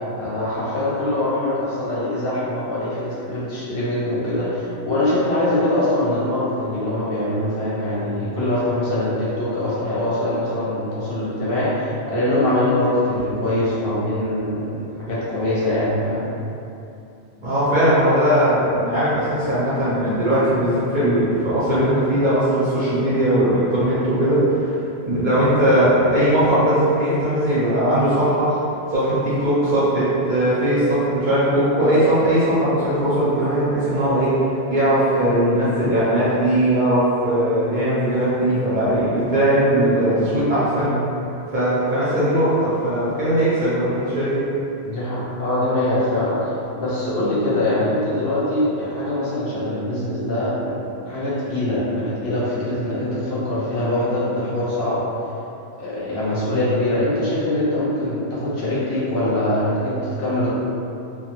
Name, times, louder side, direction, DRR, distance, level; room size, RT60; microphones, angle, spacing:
voice 1, 0.2-16.3 25.7-25.9 40.7-41.0 44.8-55.0 55.8-60.5, left 1 dB, 60° left, -9 dB, 0.7 m, -23 dB
voice 2, 17.4-24.8 25.1-28.6 28.9-34.4 34.7-40.9 41.5-44.5, right 1 dB, 55° right, -11 dB, 0.6 m, -19 dB
2.2 x 2.1 x 2.9 m, 2.7 s
omnidirectional pair, 1.3 m